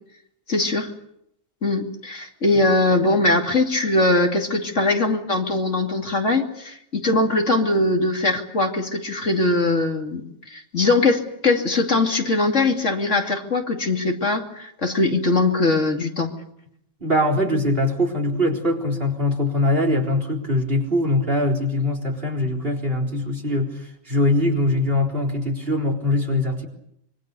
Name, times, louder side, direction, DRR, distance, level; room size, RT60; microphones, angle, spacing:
voice 1, 0.5-0.9 1.6-16.3, left 2 dB, 60° left, 3 dB, 2.9 m, -21 dB
voice 2, 17.0-26.7, left 1 dB, 45° right, 3 dB, 4.3 m, -22 dB
26.0 x 24.5 x 6.9 m, 0.75 s
omnidirectional pair, 1.4 m